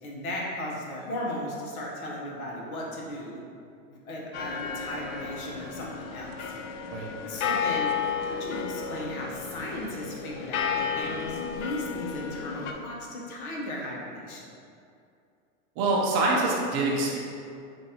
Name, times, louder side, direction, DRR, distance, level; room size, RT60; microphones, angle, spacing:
voice 1, 0.0-3.4 3.9-6.5 7.3-7.9 8.2-14.5, left 1 dB, 80° left, -3 dB, 1.1 m, -36 dB
sound 1, 4.3-12.7, left 6 dB, 60° left, 0.5 m, -33 dB
voice 2, 15.8-17.2, right 2 dB, 30° right, -3 dB, 0.6 m, -25 dB
5.1 x 2.6 x 2.8 m, 2.5 s
supercardioid pair, 145°, 43 cm